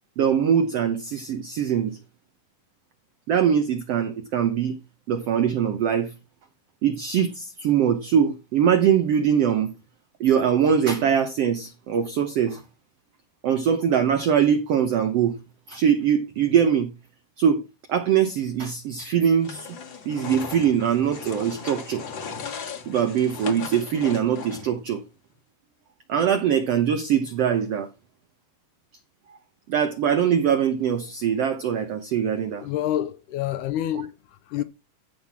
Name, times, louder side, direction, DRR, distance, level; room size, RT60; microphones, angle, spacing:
voice 1, 0.2-2.0 3.3-4.8 5.1-6.1 6.8-9.7 10.2-12.6 13.4-15.3 15.7-16.9 17.4-17.6 17.9-19.8 20.0-22.0 22.9-25.0 26.1-27.9 29.3-29.4 29.7-32.7, right 8 dB, 90° right, 1.3 m, -22 dB
sound 1, 19.4-24.8, left 6 dB, 50° left, 1.6 m, -37 dB
voice 2, 32.6-34.6, left 12 dB, 75° left, 1.9 m, -28 dB
14.5 x 5.7 x 4.7 m
omnidirectional pair, 4.2 m